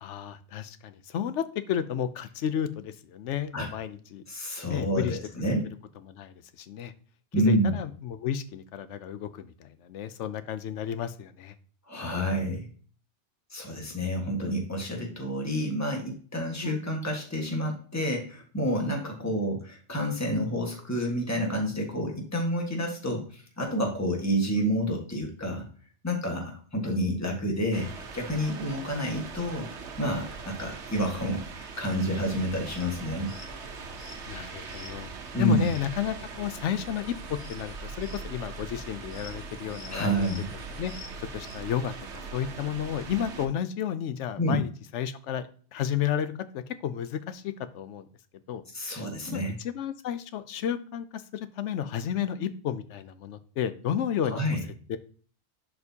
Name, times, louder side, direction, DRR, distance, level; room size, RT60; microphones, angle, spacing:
voice 1, 0.0-4.2 4.7-5.2 6.1-6.9 7.4-11.5 16.6-16.8 34.3-35.1 35.4-40.3 40.7-40.9 41.2-48.1 48.5-54.4 54.9-55.0, left 9 dB, 80° left, 12 dB, 0.9 m, -32 dB
voice 2, 4.3-5.7 7.3-7.7 11.9-12.7 13.5-25.6 26.0-29.7 30.0-33.3 35.3-35.7 39.9-40.5 44.4-44.6 48.7-49.6 54.2-54.6, equal, 15° left, 1 dB, 1.5 m, -29 dB
sound 1, 27.7-43.5, right 4 dB, 70° right, 1.2 m, -41 dB
sound 2, 32.2-41.5, left 3 dB, 45° left, 1.3 m, -50 dB
11.0 x 4.4 x 2.8 m, 0.43 s
omnidirectional pair, 1.2 m